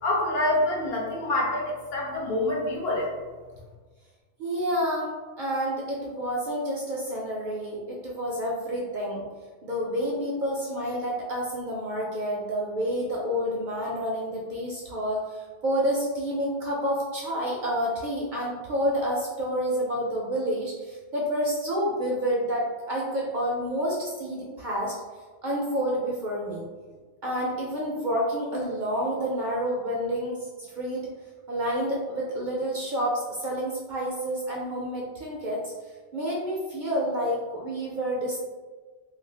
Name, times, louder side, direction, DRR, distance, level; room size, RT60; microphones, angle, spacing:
voice 1, 0.0-3.2, left 1 dB, 65° left, -3 dB, 0.9 m, -26 dB
voice 2, 4.4-5.1 5.4-9.2 9.6-24.9 25.4-26.6 27.2-31.0 31.5-35.7 36.1-38.4, equal, 60° right, -4 dB, 0.5 m, -29 dB
2.4 x 2.4 x 3.2 m, 1.4 s
omnidirectional pair, 1.2 m